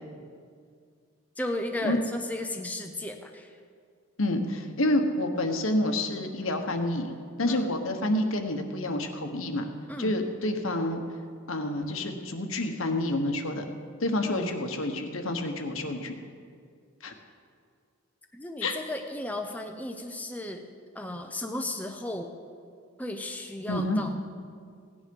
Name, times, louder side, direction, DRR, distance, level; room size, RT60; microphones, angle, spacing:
voice 1, 1.4-3.6 7.5-7.7 9.9-10.1 14.2-14.5 18.3-20.6 20.9-22.3 23.0-24.1, left 1 dB, 5° left, 3 dB, 0.7 m, -35 dB
voice 2, 4.2-7.1 7.4-9.7 10.0-11.0 11.5-13.7 14.0-16.2 17.0-17.1 18.6-18.8 23.7-24.0, left 1 dB, 75° left, 5 dB, 1.2 m, -28 dB
16.5 x 9.7 x 5.4 m, 2.2 s
head